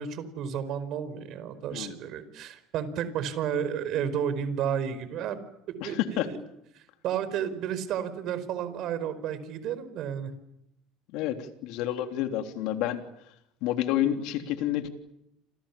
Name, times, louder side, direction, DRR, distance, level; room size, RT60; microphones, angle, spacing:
voice 1, 0.0-5.4 5.8-6.4 6.7-10.3, right 8 dB, 55° right, 13 dB, 4.9 m, -32 dB
voice 2, 5.8-6.3 11.1-13.0 13.6-14.9, left 12 dB, 70° left, 6 dB, 3.3 m, -29 dB
29.5 x 27.0 x 7.3 m, 0.81 s
supercardioid pair, 110°, 0 cm